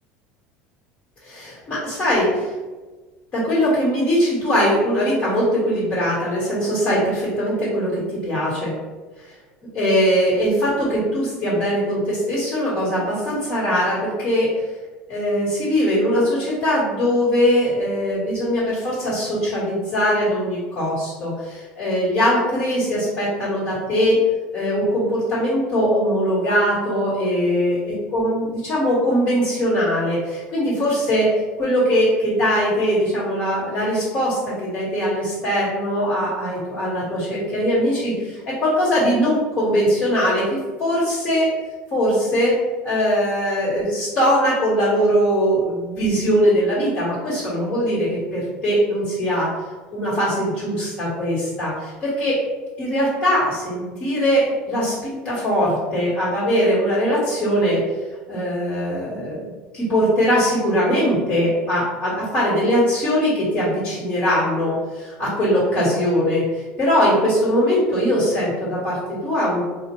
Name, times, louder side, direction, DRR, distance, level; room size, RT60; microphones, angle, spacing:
voice 1, 1.2-2.5 3.3-8.7 9.2-9.3 9.7-14.5 15.1-24.2 24.5-27.8 28.1-31.3 31.6-41.5 41.9-42.5 42.8-49.5 49.9-52.4 52.8-57.8 58.3-69.6, equal, 30° left, -8 dB, 1.5 m, -21 dB
4.3 x 2.4 x 3.0 m, 1.3 s
cardioid pair, 145°, 4 cm